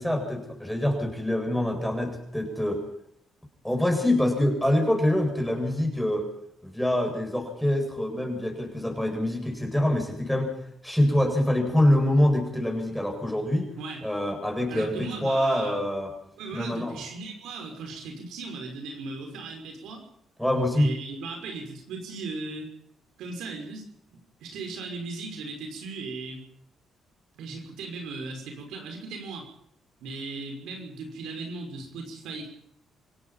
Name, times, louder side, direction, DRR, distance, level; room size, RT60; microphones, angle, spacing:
voice 1, 0.0-2.8 3.6-6.3 6.6-10.5 10.8-13.7 14.0-16.1 16.5-17.0 20.4-20.9, left 1 dB, ahead, 2 dB, 7.8 m, -25 dB
voice 2, 14.7-15.8 16.4-20.0 20.7-22.7 23.2-26.5 27.4-29.5 30.0-32.5, right 3 dB, 85° right, 3 dB, 5.8 m, -37 dB
26.0 x 17.5 x 5.8 m, 0.71 s
cardioid pair, 90°, 0 cm